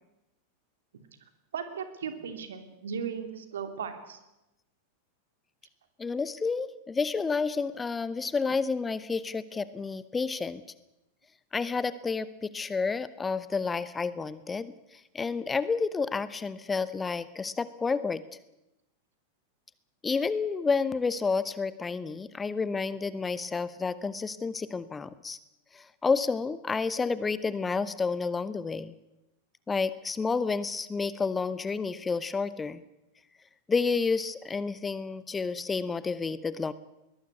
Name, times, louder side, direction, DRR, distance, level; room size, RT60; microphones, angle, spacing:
voice 1, 1.5-4.2, right 7 dB, 65° right, 8 dB, 3.1 m, -36 dB
voice 2, 6.0-10.6 11.5-18.2 20.0-25.4 25.7-28.9 29.7-32.8 33.7-36.7, left 4 dB, 15° left, 16 dB, 0.9 m, -30 dB
21.5 x 19.5 x 8.3 m, 0.92 s
figure-of-eight pair, 90°, 0 cm